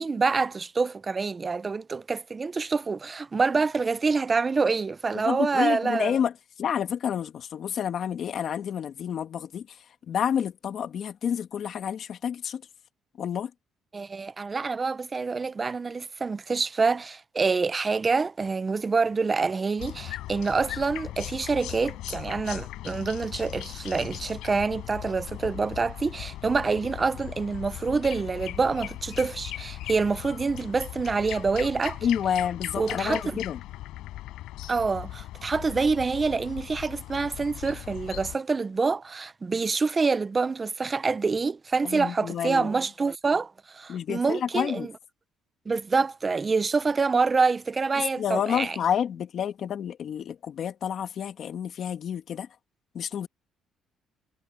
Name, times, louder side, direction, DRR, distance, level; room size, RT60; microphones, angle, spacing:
voice 1, 0.0-6.2 13.9-32.0 32.8-33.4 34.7-44.9 45.7-48.8, right 4 dB, 25° right, 0.6 m, -26 dB
voice 2, 5.3-6.3 6.6-9.8 10.1-12.6 13.2-13.5 32.0-33.6 41.8-42.7 43.9-44.9 48.0-52.5 52.9-53.3, left 8 dB, 50° left, 2.3 m, -29 dB
XY Tsaritsyno spring night park nightingale distant-traffic, 19.8-38.4, left 15 dB, 85° left, 7.6 m, -39 dB
cardioid pair, 145°, 0 cm